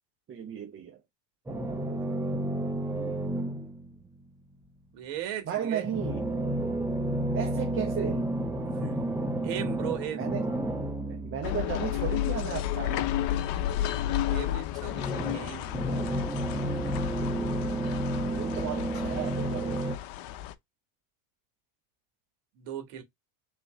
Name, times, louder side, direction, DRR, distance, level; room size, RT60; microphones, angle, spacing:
voice 1, 0.3-1.0 1.9-2.2 5.4-6.3 7.3-8.3 10.1-10.5 11.1-13.2 18.2-20.0, right 9 dB, 30° right, 0.8 m, -35 dB
sound 1, 1.5-4.0 5.8-12.9 14.9-20.0, right 1 dB, 5° right, 0.3 m, -31 dB
voice 2, 4.9-5.8 7.1-7.3 8.6-10.3 13.8-15.9 22.6-23.0, right 11 dB, 70° right, 1.6 m, -38 dB
sound 2, 11.4-20.5, left 12 dB, 65° left, 0.7 m, -32 dB
3.7 x 3.2 x 3.1 m
cardioid pair, 135°, 44 cm